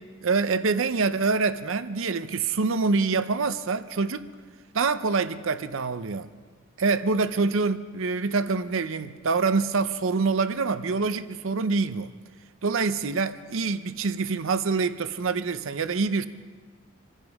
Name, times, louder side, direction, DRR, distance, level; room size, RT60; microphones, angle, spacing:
voice 1, 0.2-4.3 4.7-6.3 6.8-12.1 12.6-16.3, right 4 dB, 70° right, 0.6 m, -25 dB
26.0 x 15.5 x 3.6 m
head